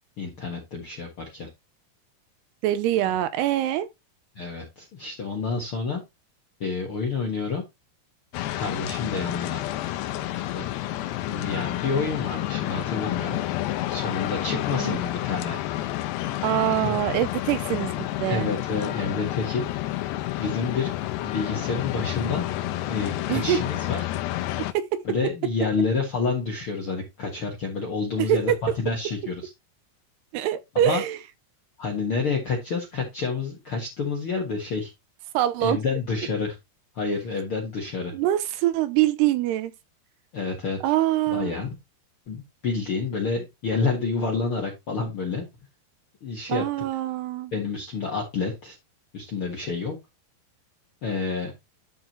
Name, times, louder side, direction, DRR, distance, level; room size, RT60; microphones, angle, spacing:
voice 1, 0.2-1.5 4.3-6.0 6.6-7.6 8.5-9.6 10.5-10.7 11.3-13.4 13.9-15.6 16.7-17.0 18.3-19.6 20.4-20.9 21.2-22.4 22.8-24.1 25.0-29.5 30.7-31.0 31.8-34.9 35.6-36.5 36.9-38.1 40.3-40.8 41.3-41.8 42.3-45.4 46.2-46.6 47.5-48.8 49.1-49.9 51.0-51.5, left 4 dB, 55° left, 1.4 m, -29 dB
voice 2, 2.6-3.9 14.7-15.0 16.4-18.0 18.2-18.5 23.3-23.6 24.7-25.0 28.2-28.6 30.3-31.2 35.3-35.8 38.1-39.7 40.8-41.5 46.5-47.5, right 12 dB, 80° right, 2.6 m, -24 dB
sound 1, 8.3-24.7, left 14 dB, 80° left, 2.7 m, -30 dB
12.0 x 5.0 x 3.0 m
omnidirectional pair, 5.0 m